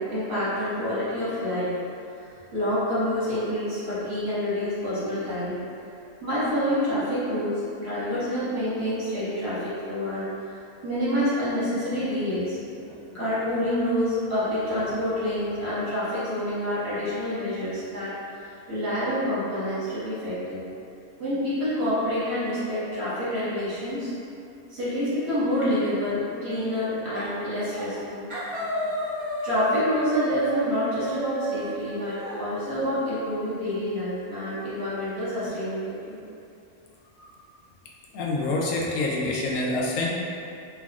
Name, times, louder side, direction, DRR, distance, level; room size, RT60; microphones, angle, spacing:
voice 1, 0.0-1.7 2.5-5.6 6.2-10.5 10.8-18.2 18.4-20.6 21.2-24.1 24.7-36.2 37.2-37.3, left 1 dB, 65° right, -12 dB, 1.9 m, -28 dB
sound 1, 27.1-27.4 27.7-28.0 28.3-32.4, right 1 dB, 35° right, 0.5 m, -31 dB
voice 2, 38.1-40.1, left 2 dB, 75° left, -3 dB, 1.0 m, -26 dB
4.6 x 2.3 x 2.4 m, 2.6 s
omnidirectional pair, 1.5 m